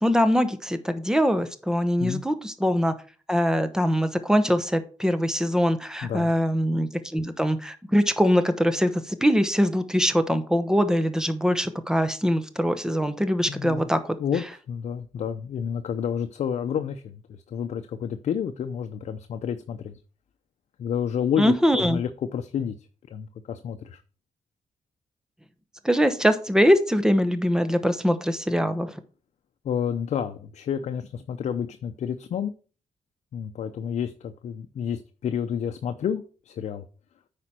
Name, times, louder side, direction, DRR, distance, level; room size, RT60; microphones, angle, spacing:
voice 1, 0.0-2.9 3.3-14.0 21.4-22.0 25.8-28.9, equal, 5° right, 9 dB, 0.9 m, -23 dB
voice 2, 13.5-13.8 14.2-17.2 17.5-20.0 20.8-22.8 23.1-24.0 29.6-32.5 33.3-36.8, left 8 dB, 70° left, 7 dB, 0.6 m, -30 dB
9.0 x 5.1 x 4.3 m, 0.38 s
cardioid pair, 105°, 12 cm